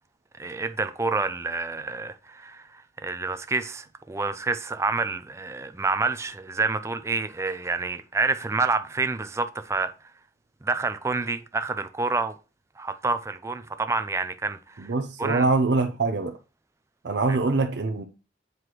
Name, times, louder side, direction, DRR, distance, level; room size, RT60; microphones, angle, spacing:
voice 1, 0.4-9.9 10.6-12.4 12.8-14.9 15.2-15.5 17.3-17.4, right 3 dB, 15° right, 0.4 m, -28 dB
voice 2, 14.8-16.3 17.0-18.0, right 3 dB, 70° right, 0.5 m, -24 dB
7.7 x 3.1 x 4.7 m
head